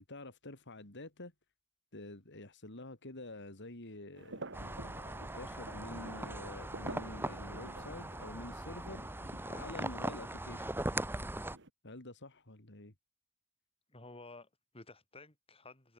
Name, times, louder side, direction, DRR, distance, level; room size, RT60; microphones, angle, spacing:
voice 1, 0.0-1.3 1.9-4.4 5.3-9.0 9.5-10.8 11.8-12.9, left 2 dB, 55° left, 3.6 m, -48 dB
sound 1, 4.1-11.7, right 2 dB, 60° right, 5.4 m, -50 dB
sound 2, 4.5-11.6, right 1 dB, 10° right, 1.3 m, -40 dB
voice 2, 13.9-15.9, left 2 dB, 25° left, 5.2 m, -53 dB
head